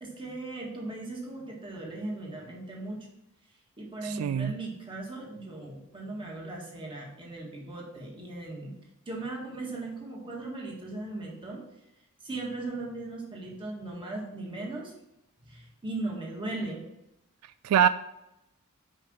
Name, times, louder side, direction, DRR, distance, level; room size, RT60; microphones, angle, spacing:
voice 1, 0.0-3.0 3.8-8.7 9.1-11.6 12.2-14.9 15.4-16.8, right 2 dB, 25° right, -2 dB, 1.8 m, -38 dB
voice 2, 4.0-4.5 17.6-17.9, right 9 dB, 85° right, 13 dB, 0.3 m, -23 dB
5.6 x 5.1 x 6.1 m, 0.87 s
head